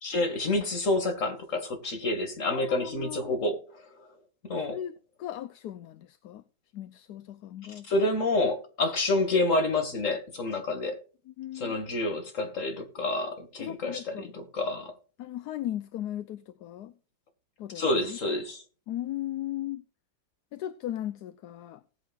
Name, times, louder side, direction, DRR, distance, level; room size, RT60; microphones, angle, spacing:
voice 1, 0.0-3.6 4.4-4.8 7.9-11.0 11.5-14.9 17.7-18.6, left 2 dB, 45° left, 2.6 m, -28 dB
voice 2, 2.5-3.4 4.7-4.9 5.2-6.4 6.7-7.9 11.3-11.8 13.6-14.3 15.2-16.9 17.6-17.8 18.1-18.2 18.9-19.8 20.5-21.8, left 12 dB, 70° left, 1.2 m, -37 dB
19.0 x 8.7 x 2.5 m
omnidirectional pair, 2.0 m